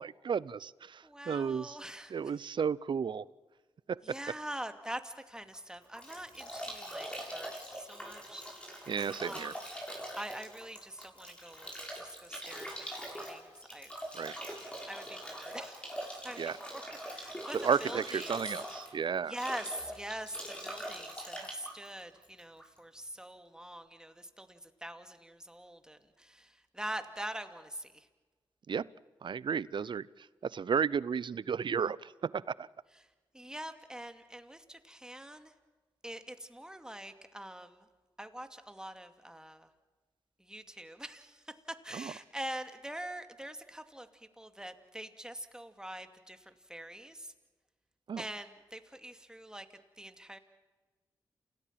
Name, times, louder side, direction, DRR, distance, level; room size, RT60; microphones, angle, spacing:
voice 1, 0.0-1.8 2.1-3.2 3.9-4.0 8.9-9.5 14.1-14.4 16.4-16.6 17.5-19.3 28.7-28.9 29.2-32.7 41.9-42.1 48.1-48.2, right 6 dB, 60° right, 22 dB, 0.6 m, -33 dB
voice 2, 1.0-2.1 4.0-8.9 9.2-9.5 10.2-11.7 12.0-13.9 14.9-15.9 16.2-16.8 17.1-18.3 19.3-28.1 33.3-35.5 36.0-37.8 38.2-39.7 40.4-41.4 41.8-47.3 48.2-49.7 50.0-50.4, right 1 dB, 10° right, 8 dB, 2.4 m, -44 dB
Bathtub (filling or washing) / Drip / Trickle dribble, 5.5-22.8, equal, 10° left, 7.7 m, -43 dB
28.5 x 17.5 x 7.6 m, 1.3 s
supercardioid pair, 45°, 9 cm